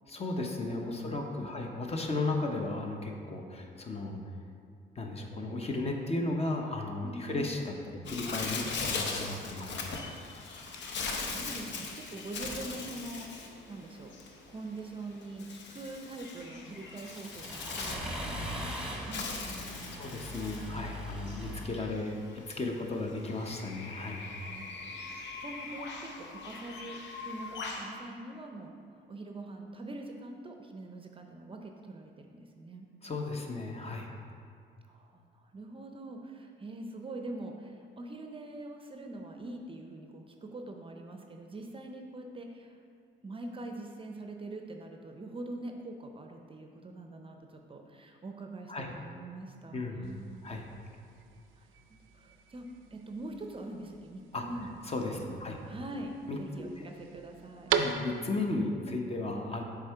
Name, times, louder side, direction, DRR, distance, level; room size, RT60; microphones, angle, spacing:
voice 1, 0.1-4.2 5.0-7.7 8.1-10.0 20.0-24.3 33.0-34.1 48.7-48.9 49.7-50.1 50.4-50.6 54.3-54.4 54.9-55.6 56.3-56.9 57.7-59.6, left 2 dB, 30° left, 2 dB, 0.7 m, -35 dB
voice 2, 0.9-1.6 7.0-7.5 10.7-10.8 11.2-13.3 13.7-14.1 14.5-20.0 24.5-24.8 25.4-28.7 29.1-32.9 34.9-42.8 43.2-50.5 51.6-54.8 55.3-57.7, right 2 dB, 25° right, 3 dB, 0.5 m, -44 dB
Bird, 8.0-27.9, left 4 dB, 65° left, 0.7 m, -40 dB
Accelerating revving vroom, 16.4-21.7, equal, 5° right, 1.1 m, -40 dB
sound 1, 50.0-58.5, right 7 dB, 85° right, 0.4 m, -39 dB
6.5 x 3.6 x 4.5 m, 2.3 s
cardioid pair, 90°, 20 cm